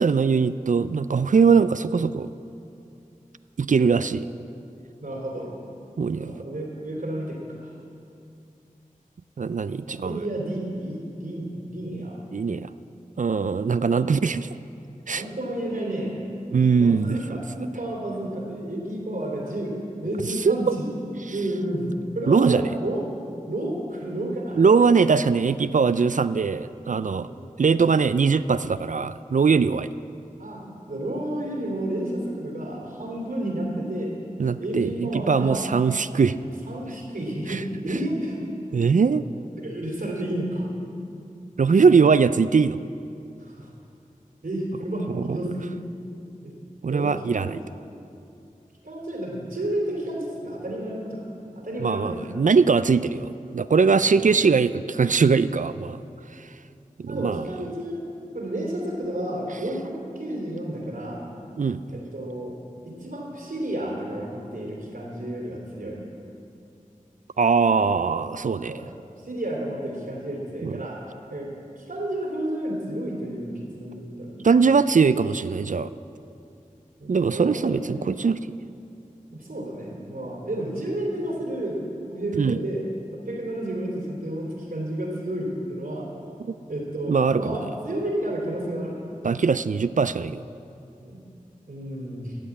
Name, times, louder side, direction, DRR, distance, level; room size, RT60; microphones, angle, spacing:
voice 1, 0.0-2.3 3.6-4.2 6.0-6.4 9.4-10.3 12.3-12.7 13.2-14.5 15.1-15.2 16.5-17.2 20.5-20.7 22.3-22.7 24.6-27.3 27.6-29.9 34.4-36.4 37.5-37.6 38.7-39.2 41.6-42.8 45.1-45.4 46.8-47.6 51.8-56.0 57.0-57.5 61.6-61.8 67.4-68.7 70.6-70.8 74.4-75.9 77.1-78.4 82.3-82.6 87.1-87.6 89.2-90.4, right 5 dB, 65° right, 14 dB, 0.4 m, -21 dB
voice 2, 5.0-5.5 6.1-7.7 9.9-12.2 13.7-13.9 15.1-16.1 16.8-20.9 21.3-23.1 23.5-25.4 27.1-27.5 30.4-34.1 34.6-35.7 36.4-38.4 39.6-40.7 43.4-43.7 44.4-45.8 46.4-46.5 46.9-47.6 48.8-51.3 51.6-52.3 53.9-54.0 57.1-58.0 58.3-61.2 61.9-62.5 62.8-66.0 68.7-68.9 69.2-71.0 71.3-71.5 71.8-74.4 77.0-77.8 79.3-82.8 83.1-86.1 86.7-89.0 91.0-91.2 91.7-92.4, right 1 dB, 85° right, -2 dB, 3.1 m, -31 dB
13.5 x 8.0 x 8.4 m, 2.6 s
wide cardioid pair, 40°, 14 cm